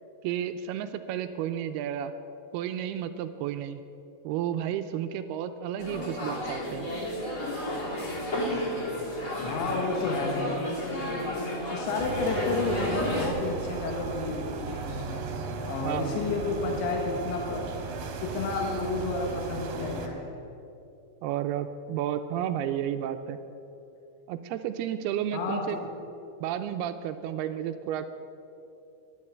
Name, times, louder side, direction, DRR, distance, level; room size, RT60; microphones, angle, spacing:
voice 1, 0.2-2.1 2.5-3.8 4.2-6.9 15.8-16.2 21.2-23.4 24.3-25.8 26.4-28.1, right 10 dB, 85° right, 9 dB, 2.3 m, -32 dB
sound 1, 5.8-13.3, left 1 dB, 30° left, 3.4 m, -32 dB
voice 2, 9.4-10.7 11.4-15.3 15.7-17.7 18.2-20.3 25.3-25.9, left 3 dB, 85° left, 1 dB, 3.7 m, -31 dB
sound 2, 12.0-20.1, right 5 dB, 65° right, 2.8 m, -36 dB
12.0 x 11.5 x 7.9 m, 2.7 s
omnidirectional pair, 5.0 m